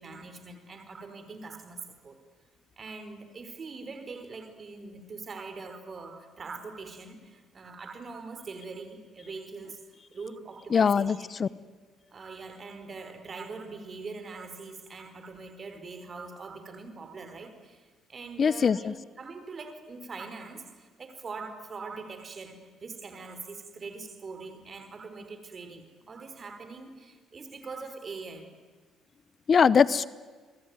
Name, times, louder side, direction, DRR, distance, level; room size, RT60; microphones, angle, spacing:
voice 1, 0.0-2.2 2.8-9.8 10.1-11.3 12.1-28.5, right 4 dB, 40° right, 9 dB, 4.5 m, -43 dB
voice 2, 10.7-11.5 18.4-18.9 29.5-30.0, left 6 dB, 45° left, 19 dB, 0.8 m, -22 dB
26.5 x 22.5 x 9.7 m, 1.4 s
hypercardioid pair, 60°, 0 cm